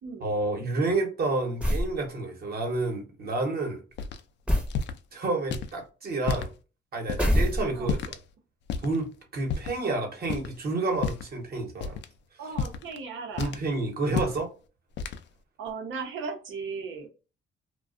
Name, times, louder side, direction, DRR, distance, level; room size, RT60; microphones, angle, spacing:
voice 1, 0.2-3.8 5.1-6.5 6.9-8.2 8.8-12.0 13.4-14.5, right 2 dB, 50° right, 1.1 m, -29 dB
sound 1, 1.6-2.0 4.5-4.8 7.2-8.0, equal, 5° right, 0.7 m, -24 dB
sound 2, 4.0-4.2 4.7-5.0 5.5-5.7 6.2-6.5 7.1-7.3 7.9-8.2 8.7-9.0 9.5-9.8 10.2-10.6 10.9-11.4 11.8-12.1 12.6-13.0 13.4-13.7 14.1-14.4 15.0-15.2, left 5 dB, 65° left, 0.4 m, -31 dB
voice 2, 12.4-13.5 15.6-17.1, right 5 dB, 75° right, 0.8 m, -36 dB
2.4 x 2.3 x 2.4 m
cardioid pair, 90°, 20 cm